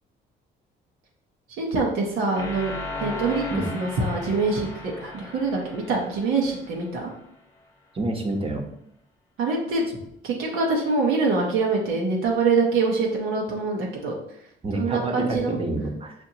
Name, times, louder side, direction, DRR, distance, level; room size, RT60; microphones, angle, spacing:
voice 1, 1.6-2.7 3.0-3.4 3.7-7.1 9.4-9.9 10.2-14.1 14.7-15.6, right 3 dB, 90° right, -2 dB, 0.9 m, -24 dB
sound 1, 2.4-7.2, left 2 dB, 15° left, 1.0 m, -37 dB
voice 2, 7.9-8.7 14.6-16.1, right 2 dB, 30° right, 1 dB, 0.8 m, -28 dB
6.1 x 2.6 x 2.8 m, 0.73 s
cardioid pair, 90°, 20 cm